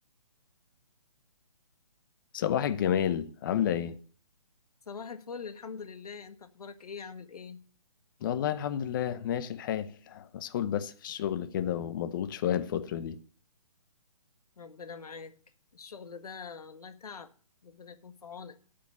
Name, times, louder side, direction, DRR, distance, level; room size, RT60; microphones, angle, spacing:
voice 1, 2.3-4.0 8.2-13.2, left 10 dB, 35° left, 0.8 m, -30 dB
voice 2, 4.9-7.6 14.6-15.4 15.7-17.3 17.6-18.6, left 5 dB, 80° left, 1.5 m, -43 dB
13.0 x 5.2 x 6.8 m
hypercardioid pair, 155°, 19 cm